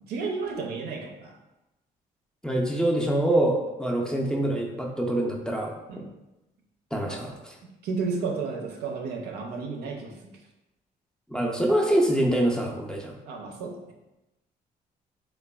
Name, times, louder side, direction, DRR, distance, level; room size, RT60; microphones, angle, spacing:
voice 1, 0.1-1.3 5.9-6.1 7.0-7.2 7.8-10.1 13.2-13.9, right 4 dB, 80° right, 2 dB, 0.5 m, -32 dB
voice 2, 2.4-5.8 6.9-7.6 11.3-13.2, right 1 dB, 5° left, 0 dB, 0.4 m, -25 dB
3.2 x 2.2 x 2.2 m, 0.97 s
cardioid pair, 80°, 17 cm